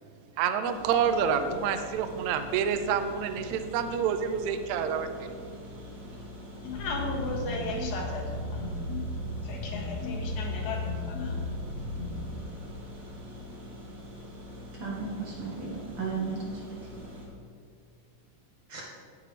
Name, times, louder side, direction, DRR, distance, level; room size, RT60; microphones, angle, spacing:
voice 1, 0.4-5.4, right 7 dB, 90° right, 7 dB, 1.7 m, -28 dB
sound 1, 0.6-17.3, equal, 30° right, 1.8 m, -44 dB
sound 2, 6.6-12.3, left 5 dB, 85° left, 2.9 m, -40 dB
voice 2, 6.7-8.6 9.4-10.8 11.0-11.4, left 3 dB, 60° left, -1 dB, 2.7 m, -36 dB
sound 3, 6.7-12.3, equal, 45° left, 1.6 m, -36 dB
voice 3, 14.8-16.6 18.7-18.8, right 5 dB, 55° right, -4 dB, 1.7 m, -34 dB
18.5 x 6.7 x 3.4 m, 2.1 s
omnidirectional pair, 4.2 m